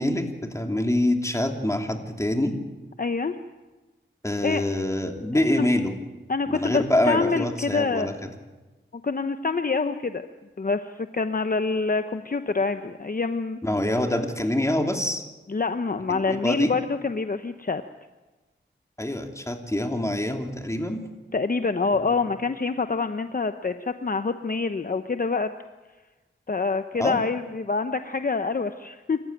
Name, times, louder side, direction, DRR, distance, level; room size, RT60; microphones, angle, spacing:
voice 1, 0.0-2.6 4.2-5.9 6.5-8.3 13.6-15.2 16.1-16.7 19.0-21.0 27.0-27.2, left 1 dB, 15° left, 4 dB, 3.0 m, -25 dB
voice 2, 3.0-3.3 4.4-4.6 5.5-5.6 6.3-8.1 9.0-10.2 10.6-13.6 15.5-17.8 21.3-25.5 26.5-29.2, left 4 dB, 45° left, 9 dB, 0.9 m, -26 dB
27.0 x 14.5 x 9.1 m, 1.2 s
wide cardioid pair, 65°, 20 cm